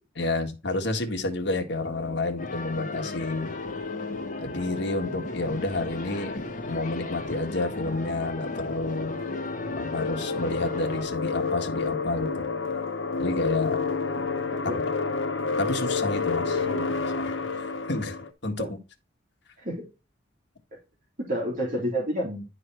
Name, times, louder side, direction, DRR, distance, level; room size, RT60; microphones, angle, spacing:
voice 1, 0.1-3.5 4.4-6.4 6.7-9.2 9.7-12.5 13.2-13.8 15.6-16.6 17.2-18.2 18.4-18.7, left 2 dB, 65° left, 1.7 m, -30 dB
sound 1, 1.8-18.3, left 4 dB, 85° left, 1.1 m, -31 dB
sound 2, 2.4-11.1, left 2 dB, 45° left, 1.5 m, -37 dB
voice 2, 14.5-14.8 16.6-16.9 18.6-18.7 19.6-19.9 21.2-22.5, equal, 45° right, 2.9 m, -30 dB
11.0 x 4.0 x 4.6 m
head